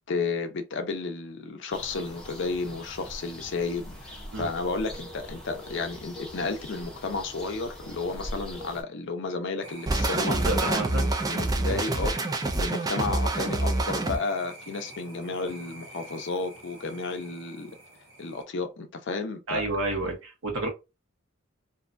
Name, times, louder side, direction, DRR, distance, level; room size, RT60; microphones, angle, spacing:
voice 1, 0.1-12.3 12.6-17.7 18.2-19.7, left 3 dB, 60° left, 0.5 m, -32 dB
sound 1, 1.7-8.8, equal, 5° left, 0.7 m, -42 dB
sound 2, 9.6-18.4, right 2 dB, 70° right, 0.9 m, -47 dB
sound 3, 9.9-14.2, right 2 dB, 20° right, 0.3 m, -26 dB
voice 2, 10.2-11.0 19.5-20.7, right 2 dB, 90° right, 1.0 m, -30 dB
2.6 x 2.2 x 2.5 m
head